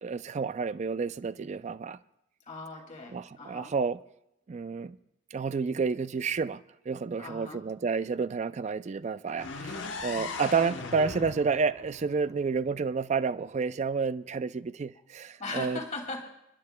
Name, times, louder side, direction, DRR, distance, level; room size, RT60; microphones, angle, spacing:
voice 1, 0.0-2.0 3.1-4.0 4.5-5.0 5.3-6.6 6.9-15.8, right 5 dB, 40° right, 0.4 m, -30 dB
voice 2, 2.5-3.7 7.2-7.6 10.1-10.4 15.4-16.3, left 3 dB, 40° left, 2.4 m, -39 dB
sound 1, 9.4-13.2, left 3 dB, 80° left, 1.0 m, -39 dB
29.0 x 11.5 x 2.2 m
head